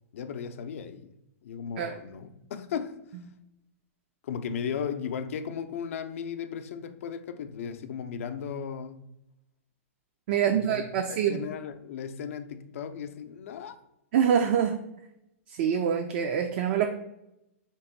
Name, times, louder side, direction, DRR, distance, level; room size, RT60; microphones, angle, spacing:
voice 1, 0.1-1.1 1.4-3.0 4.2-9.1 10.3-13.8, left 7 dB, 70° left, 0.4 m, -36 dB
voice 2, 10.3-11.4 14.1-14.8 15.5-16.9, right 8 dB, 55° right, 0.4 m, -25 dB
3.5 x 3.0 x 4.4 m
hypercardioid pair, 130°, 8 cm